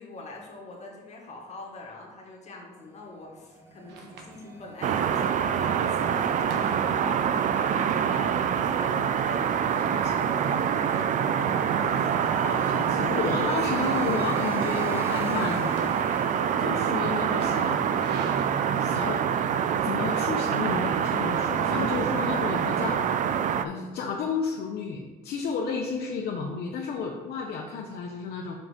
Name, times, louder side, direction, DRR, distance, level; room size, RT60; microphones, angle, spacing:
voice 1, 0.0-11.8, left 2 dB, 40° left, -1 dB, 1.8 m, -43 dB
sound 1, 2.7-17.3, right 1 dB, 15° right, 0.9 m, -45 dB
sound 2, 3.9-22.1, right 4 dB, 80° right, 1.0 m, -46 dB
sound 3, 4.8-23.7, right 8 dB, 50° right, 0.4 m, -26 dB
voice 2, 11.8-15.8 16.6-17.8 18.2-19.2 19.8-23.2 23.6-28.5, left 5 dB, 70° left, 0 dB, 0.8 m, -32 dB
5.7 x 4.9 x 5.0 m, 1.3 s
cardioid pair, 110°, 17 cm